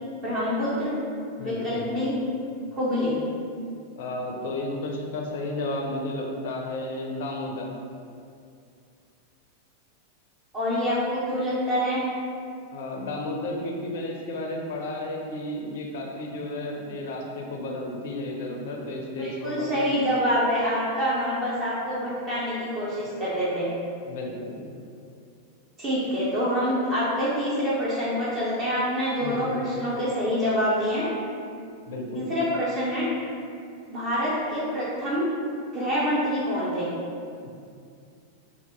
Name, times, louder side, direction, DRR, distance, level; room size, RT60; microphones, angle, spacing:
voice 1, 0.2-0.9 1.4-2.1 2.7-3.1 10.5-12.0 19.2-23.7 25.8-31.0 32.1-33.1 33.9-35.3 35.7-36.9, equal, 30° right, -9 dB, 0.7 m, -26 dB
voice 2, 1.4-1.9 4.0-7.7 12.7-19.8 24.0-24.6 29.2-29.6 31.9-32.3 37.4-37.5, left 1 dB, 55° left, 0 dB, 0.4 m, -33 dB
2.8 x 2.4 x 3.6 m, 2.4 s
figure-of-eight pair, 90°, 0 cm